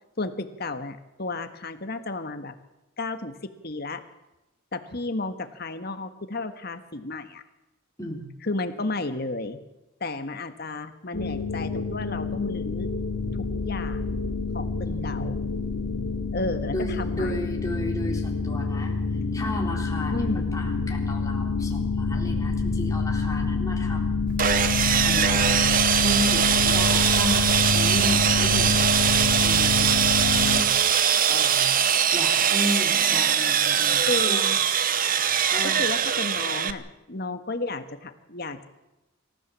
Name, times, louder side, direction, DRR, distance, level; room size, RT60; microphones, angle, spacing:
voice 1, 0.2-2.5 3.0-4.0 4.7-7.4 8.4-9.6 10.0-12.9 13.6-14.2 14.5-14.7 15.0-15.4 16.3-17.5 20.1-20.5 34.0-34.6 35.8-38.7, left 2 dB, 50° left, 9 dB, 1.6 m, -32 dB
voice 2, 8.0-8.3 14.9-15.4 16.7-18.9 19.3-24.5 25.0-25.6 26.0-29.1 29.3-30.7 31.3-31.7 32.1-34.5 35.5-35.9, equal, 15° left, -1 dB, 3.8 m, -34 dB
sound 1, 11.1-30.6, left 4 dB, 80° left, 2.5 m, -27 dB
Sawing, 24.4-36.7, right 8 dB, 40° right, 0.9 m, -22 dB
26.0 x 15.0 x 7.6 m, 0.99 s
head